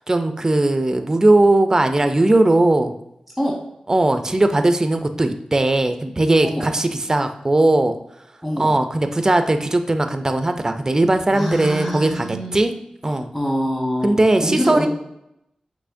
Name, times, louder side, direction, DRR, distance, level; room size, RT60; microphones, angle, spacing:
voice 1, 0.0-2.9 3.9-7.9 8.6-12.3 12.5-12.7 13.0-13.3 14.0-14.9, right 2 dB, 25° right, 8 dB, 0.3 m, -18 dB
voice 2, 8.4-8.7 11.3-12.6 13.0-14.1 14.4-14.9, equal, 15° left, -4 dB, 1.0 m, -25 dB
5.5 x 3.1 x 2.5 m, 0.83 s
wide cardioid pair, 80°, 2 cm